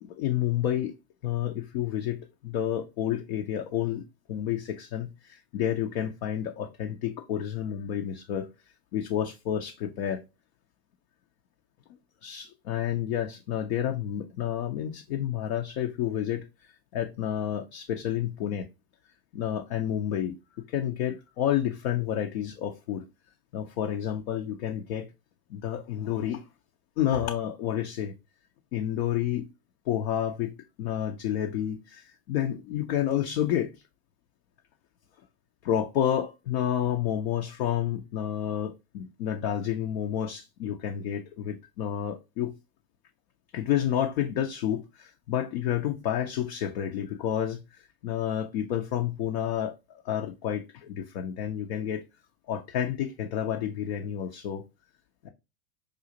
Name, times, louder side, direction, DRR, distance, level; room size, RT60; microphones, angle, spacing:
voice 1, 0.0-0.9 1.2-4.0 4.3-8.5 8.9-10.2 12.2-16.4 16.9-18.7 19.3-20.4 20.7-23.0 23.5-25.1 25.5-26.5 27.0-28.1 28.7-29.4 29.9-30.5 30.8-33.7 35.6-42.5 43.5-49.7 50.0-52.0 52.5-54.6, left 10 dB, 50° left, 0.6 m, -30 dB
5.0 x 2.4 x 2.7 m
hypercardioid pair, 95°, 45 cm